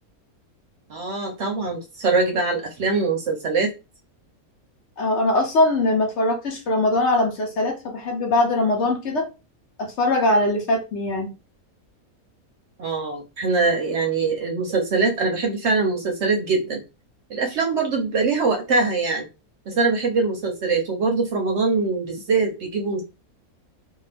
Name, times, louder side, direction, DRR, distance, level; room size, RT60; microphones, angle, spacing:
voice 1, 0.9-3.7 12.8-16.8 17.3-19.3 19.7-23.0, right 4 dB, 65° right, 0.8 m, -23 dB
voice 2, 5.0-9.3 9.8-11.3, left 2 dB, 60° left, 0.9 m, -21 dB
2.6 x 2.4 x 3.3 m
omnidirectional pair, 1.5 m